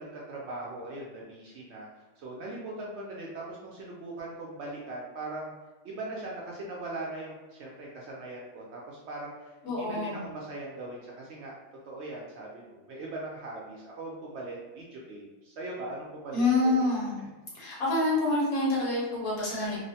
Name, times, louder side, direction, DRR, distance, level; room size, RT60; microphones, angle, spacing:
voice 1, 0.0-5.5 5.8-11.5 11.9-16.9, right 2 dB, 65° right, -3 dB, 0.7 m, -40 dB
voice 2, 9.6-10.3 16.3-17.2 17.5-19.8, left 2 dB, 90° left, -5 dB, 1.4 m, -27 dB
3.0 x 2.1 x 2.7 m, 1.2 s
omnidirectional pair, 1.5 m